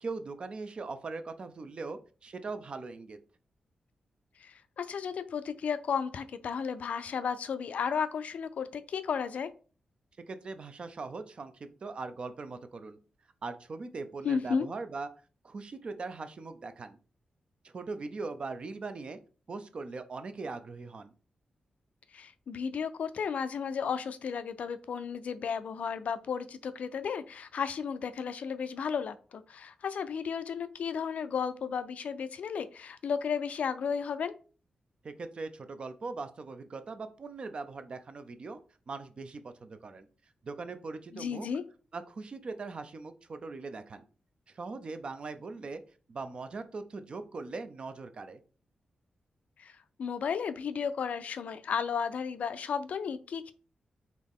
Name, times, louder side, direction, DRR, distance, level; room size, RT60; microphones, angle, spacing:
voice 1, 0.0-3.2 10.3-13.0 13.4-15.1 15.4-17.0 17.6-19.2 19.5-21.1 35.0-38.6 38.9-40.1 40.4-41.5 41.9-44.0 44.5-45.8 46.1-48.4, right 3 dB, 45° right, 9 dB, 0.5 m, -40 dB
voice 2, 4.4-9.5 14.2-14.7 22.1-34.3 41.1-41.6 49.6-53.5, left 6 dB, 70° left, 12 dB, 0.4 m, -33 dB
4.0 x 3.0 x 3.6 m, 0.37 s
wide cardioid pair, 125°, 2 cm